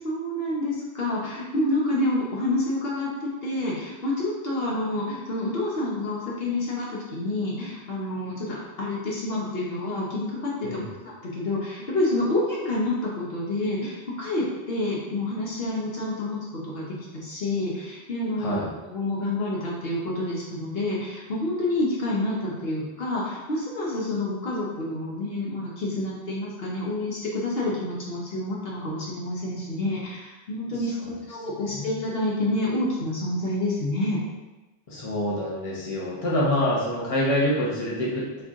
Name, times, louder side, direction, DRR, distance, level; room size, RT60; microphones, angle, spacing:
voice 1, 0.0-18.6 18.8-34.2, left 1 dB, 70° left, -5 dB, 1.2 m, -28 dB
voice 2, 18.4-18.7 30.7-31.1 31.7-31.9 34.9-38.4, left 1 dB, 35° left, -5 dB, 1.1 m, -26 dB
4.6 x 3.1 x 3.6 m, 1.1 s
omnidirectional pair, 1.0 m